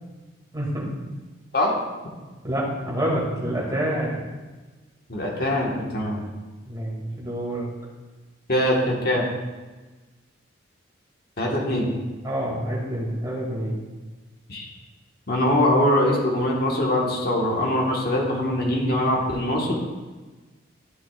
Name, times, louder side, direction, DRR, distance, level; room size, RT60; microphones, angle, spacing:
voice 1, 0.5-1.1 2.4-4.2 6.7-7.7 12.2-13.8, right 1 dB, 20° right, -4 dB, 2.2 m, -27 dB
voice 2, 5.1-6.2 8.5-9.3 11.4-11.9 14.5-14.7 15.3-19.8, left 1 dB, 50° left, -2 dB, 1.4 m, -22 dB
13.0 x 6.1 x 2.4 m, 1.3 s
head